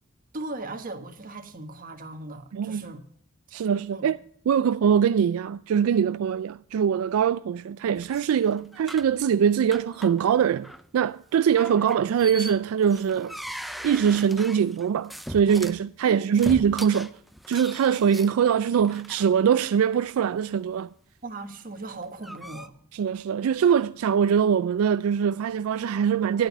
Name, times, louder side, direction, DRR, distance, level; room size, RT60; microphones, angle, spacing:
voice 1, 0.3-3.0 3.9-4.1 16.1-16.2 21.2-22.7, right 2 dB, 40° right, 1.4 m, -38 dB
voice 2, 2.5-2.9 3.5-4.2 4.5-10.7 10.9-13.4 13.8-17.1 17.5-20.9 22.9-26.5, right 8 dB, 75° right, 0.3 m, -23 dB
sound 1, 8.0-9.2 9.7-10.3 10.6-10.9 11.6-15.8 16.3-19.3 19.9-20.1 21.8-22.7, equal, ahead, 0.4 m, -39 dB
11.0 x 9.0 x 5.3 m
head